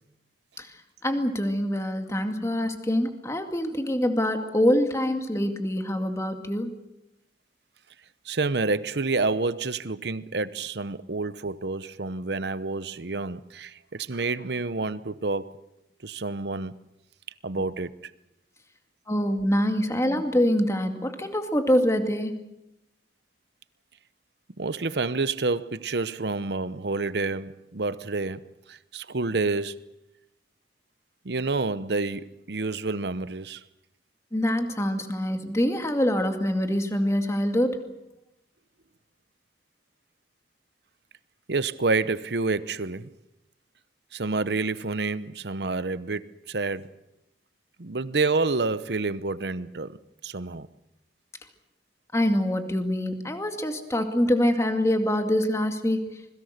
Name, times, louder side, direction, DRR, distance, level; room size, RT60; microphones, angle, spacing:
voice 1, 1.0-6.7 19.1-22.3 34.3-37.8 52.1-56.0, equal, 15° left, 2.1 m, -25 dB
voice 2, 8.3-15.5 16.0-16.7 17.4-17.9 24.6-29.8 31.2-33.6 41.5-43.1 44.1-46.9 47.8-50.0 50.2-50.7, right 3 dB, 65° right, 0.9 m, -28 dB
26.5 x 21.5 x 6.7 m
head